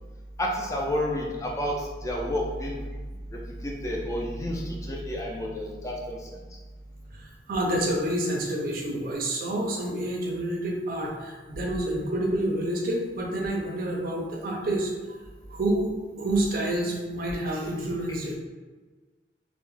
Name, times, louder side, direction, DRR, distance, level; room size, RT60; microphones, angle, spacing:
voice 1, 0.4-2.8 3.3-6.2, equal, 20° left, -2 dB, 0.3 m, -30 dB
voice 2, 7.1-15.2 15.5-15.9 16.2-18.4, right 1 dB, 55° right, 0 dB, 0.4 m, -28 dB
2.2 x 2.1 x 3.1 m, 1.4 s
head